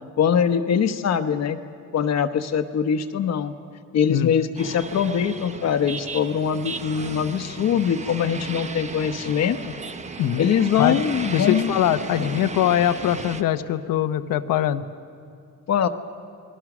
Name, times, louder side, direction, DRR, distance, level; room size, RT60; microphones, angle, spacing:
voice 1, 0.2-1.6 1.9-3.5 3.9-9.7 10.4-11.7 12.2-12.3 15.7-15.9, left 7 dB, 50° left, 10 dB, 1.1 m, -22 dB
voice 2, 4.1-4.4 10.2-10.4 10.8-11.0 11.3-14.9, left 11 dB, 85° left, 10 dB, 1.0 m, -22 dB
sound 1, 4.6-13.4, right 4 dB, 20° right, 0.9 m, -35 dB
29.0 x 21.0 x 6.1 m, 2.6 s
cardioid pair, 155°, 33 cm